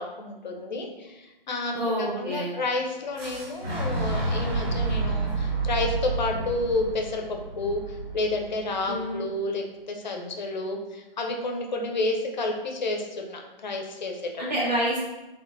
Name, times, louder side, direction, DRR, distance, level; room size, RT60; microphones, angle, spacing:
voice 1, 0.0-14.4, left 2 dB, 50° left, 2 dB, 0.5 m, -30 dB
voice 2, 1.7-2.6 8.9-9.3 14.4-15.0, equal, 45° right, -6 dB, 1.1 m, -27 dB
Boom, 3.2-9.0, right 3 dB, 75° right, 1.5 m, -30 dB
3.1 x 2.1 x 2.2 m, 1.0 s
figure-of-eight pair, 140°, 30 cm